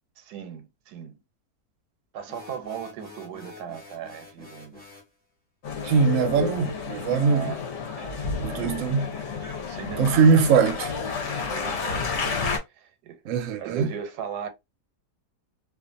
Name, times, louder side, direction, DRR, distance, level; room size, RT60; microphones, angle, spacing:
voice 1, 0.2-1.2 2.1-4.8 7.2-7.6 8.0-9.1 9.4-10.3 11.3-12.4 12.7-13.3 13.6-14.5, right 8 dB, 90° right, 1.2 m, -38 dB
sound 1, 2.3-5.1, left 3 dB, 10° left, 0.5 m, -47 dB
Male speech man speaking, 5.6-12.6, left 5 dB, 55° left, 0.8 m, -31 dB
voice 2, 5.8-7.5 8.4-9.1 10.0-10.9 13.3-13.9, right 5 dB, 65° right, 0.9 m, -21 dB
2.4 x 2.4 x 2.5 m
omnidirectional pair, 1.7 m